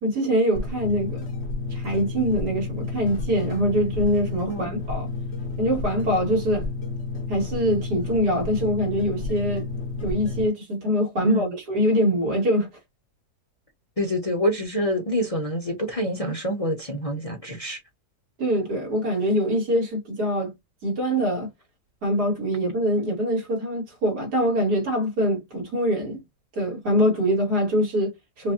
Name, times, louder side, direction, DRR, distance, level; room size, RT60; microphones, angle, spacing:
voice 1, 0.0-1.3 1.7-5.1 5.6-6.7 7.3-9.7 10.0-12.7 18.4-20.5 20.8-21.5 22.0-26.2 26.5-28.5, equal, 85° right, 2.5 m, -24 dB
sound 1, 0.5-10.5, left 3 dB, 50° left, 1.0 m, -31 dB
voice 2, 4.5-4.8 11.2-11.5 14.0-17.8, equal, 30° left, 0.8 m, -26 dB
5.1 x 2.2 x 2.7 m
omnidirectional pair, 1.7 m